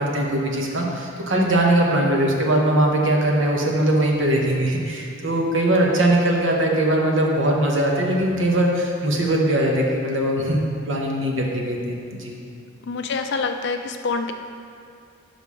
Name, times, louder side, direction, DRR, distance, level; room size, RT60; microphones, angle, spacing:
voice 1, 0.0-10.6 10.9-12.4, right 1 dB, 60° right, -1 dB, 1.0 m, -21 dB
voice 2, 12.9-14.3, left 4 dB, 55° left, 6 dB, 0.4 m, -26 dB
5.8 x 5.6 x 4.8 m, 2.5 s
head